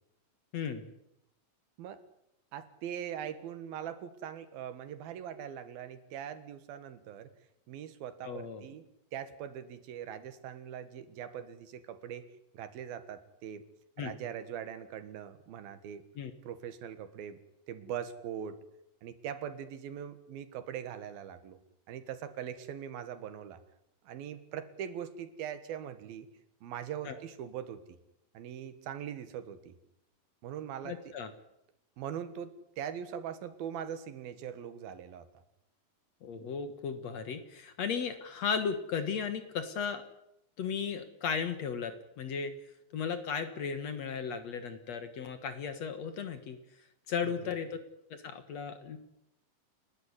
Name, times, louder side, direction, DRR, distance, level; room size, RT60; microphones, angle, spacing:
voice 1, 0.5-0.9 8.2-8.6 14.0-14.1 16.2-16.3 27.1-27.2 30.8-31.3 36.2-40.0 40.6-42.5 42.9-46.6 47.1-47.8 48.1-49.0, left 6 dB, 55° left, 9 dB, 2.3 m, -35 dB
voice 2, 2.5-7.3 7.7-8.9 9.1-12.3 12.5-13.6 14.0-16.0 16.5-17.4 17.7-18.6 19.0-21.6 21.9-23.6 24.1-26.3 26.6-27.8 28.4-29.7 30.4-31.0 32.0-35.3 47.2-47.5, right 9 dB, 85° right, 11 dB, 3.4 m, -41 dB
30.0 x 12.0 x 9.8 m, 0.82 s
omnidirectional pair, 4.2 m